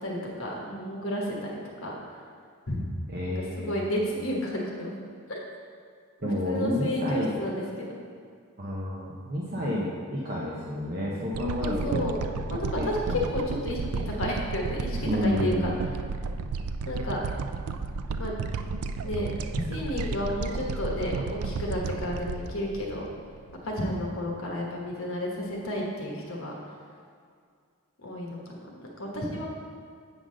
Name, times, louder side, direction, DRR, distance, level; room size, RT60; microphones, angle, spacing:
voice 1, 0.0-1.9 2.7-2.8 3.3-5.0 5.3-5.4 6.2-7.9 11.6-12.2 12.5-13.0 13.3-13.9 14.2-15.7 16.9-17.3 18.2-18.3 19.0-19.3 19.7-23.1 23.6-26.5 28.0-29.5, left 1 dB, 70° left, -2 dB, 1.2 m, -32 dB
voice 2, 3.1-3.7 6.2-7.3 8.6-12.1 12.8-13.3 15.0-15.8, equal, 45° right, -5 dB, 0.8 m, -30 dB
sound 1, 11.3-23.7 24.1-24.2, right 4 dB, 85° right, 0.4 m, -33 dB
8.0 x 3.8 x 6.2 m, 2.2 s
head